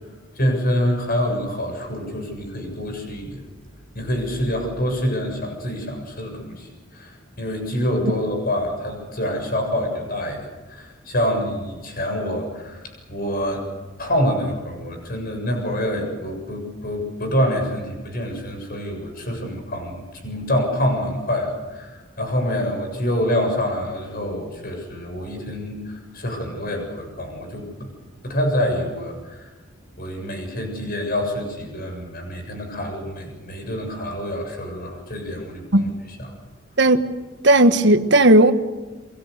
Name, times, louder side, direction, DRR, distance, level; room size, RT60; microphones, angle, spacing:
voice 1, 0.4-3.4 3.9-10.4 10.7-13.7 14.0-27.9 28.2-29.5 30.0-35.9 36.2-36.3, equal, 50° left, 4 dB, 7.5 m, -26 dB
voice 2, 37.4-38.5, right 1 dB, 65° right, 9 dB, 1.5 m, -14 dB
28.5 x 23.0 x 6.8 m, 1.2 s
head